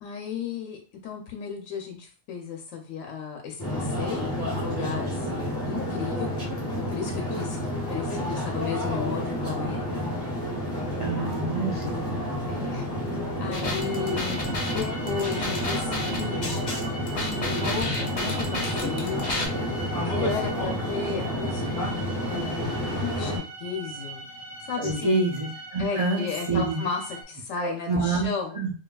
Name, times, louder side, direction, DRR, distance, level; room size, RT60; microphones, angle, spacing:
voice 1, 0.0-6.3 6.8-7.6 7.9-10.0 12.5-12.9 13.4-16.7 17.2-19.4 20.0-21.7 22.3-24.2 24.6-25.1 25.8-28.6, left 6 dB, 75° left, 2 dB, 1.0 m, -34 dB
sound 1, 3.6-23.4, equal, 5° left, 1.6 m, -30 dB
voice 2, 11.0-12.1 24.8-26.8 27.6-28.3 28.6-28.7, right 3 dB, 50° right, -2 dB, 0.4 m, -27 dB
sound 2, 13.5-19.5, left 2 dB, 45° left, 0.7 m, -32 dB
sound 3, 13.7-27.2, right 3 dB, 25° left, 1.1 m, -41 dB
4.7 x 2.3 x 2.2 m, 0.38 s
omnidirectional pair, 1.3 m